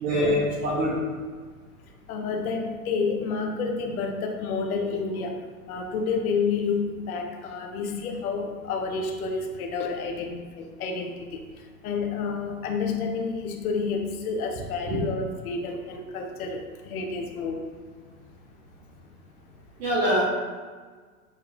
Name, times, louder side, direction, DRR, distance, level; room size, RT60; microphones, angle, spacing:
voice 1, 0.0-1.1 19.8-20.2, equal, 20° right, -4 dB, 0.3 m, -24 dB
voice 2, 2.1-5.4 5.7-11.4 11.8-16.6 16.8-17.6, left 4 dB, 70° left, 2 dB, 0.9 m, -29 dB
6.4 x 2.7 x 2.6 m, 1.5 s
hypercardioid pair, 105°, 45 cm